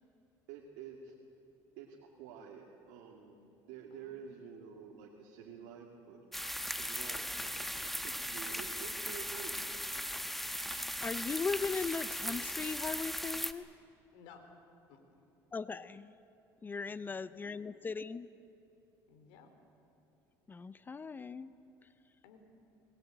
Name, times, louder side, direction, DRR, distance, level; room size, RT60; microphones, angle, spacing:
voice 1, 0.5-1.1 1.8-6.2 6.8-9.7, right 7 dB, 85° right, -1 dB, 2.4 m, -50 dB
voice 2, 3.9-4.3 7.0-7.3 10.5-10.8 14.1-14.4 14.9-15.0 16.9-17.6 19.1-19.5 22.2-22.4, left 6 dB, 80° left, 6 dB, 3.7 m, -59 dB
sound 1, 6.3-13.5, equal, ahead, 1.1 m, -38 dB
voice 3, 10.7-13.7 15.5-16.1 16.6-18.3 20.5-21.5, left 4 dB, 20° left, 15 dB, 0.6 m, -38 dB
22.0 x 20.0 x 9.0 m, 2.9 s
supercardioid pair, 110°, 9 cm